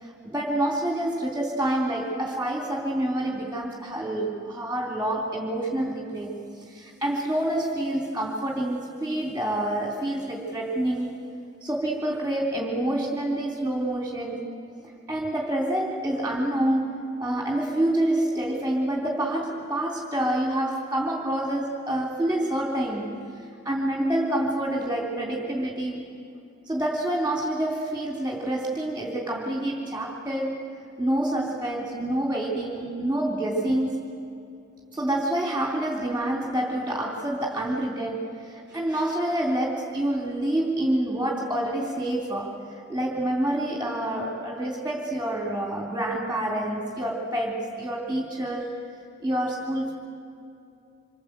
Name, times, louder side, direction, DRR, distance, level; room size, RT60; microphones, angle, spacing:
voice 1, 0.0-11.1 11.6-14.4 15.1-16.9 17.2-23.2 23.6-26.0 26.7-30.5 31.0-34.0 34.9-42.6 42.9-48.7 49.2-49.9, right 1 dB, 10° right, -2 dB, 3.2 m, -27 dB
26.5 x 26.0 x 8.1 m, 2.7 s
head